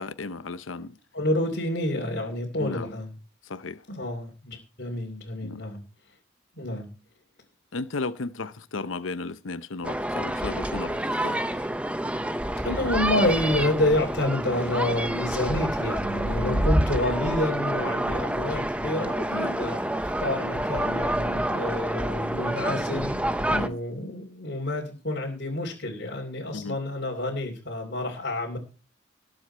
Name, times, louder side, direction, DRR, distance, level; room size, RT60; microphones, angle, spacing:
voice 1, 0.0-1.0 2.6-2.9 3.5-3.8 5.4-5.6 7.7-11.4 16.4-16.6 19.3-19.6 23.5-23.8 26.5-26.8, left 3 dB, 85° left, 0.8 m, -34 dB
voice 2, 1.1-3.2 3.9-5.8 6.6-6.9 11.1-11.7 12.6-28.6, left 1 dB, 55° left, 2.9 m, -29 dB
sound 1, 9.8-23.7, right 1 dB, 5° right, 0.6 m, -28 dB
19.5 x 7.8 x 4.5 m
head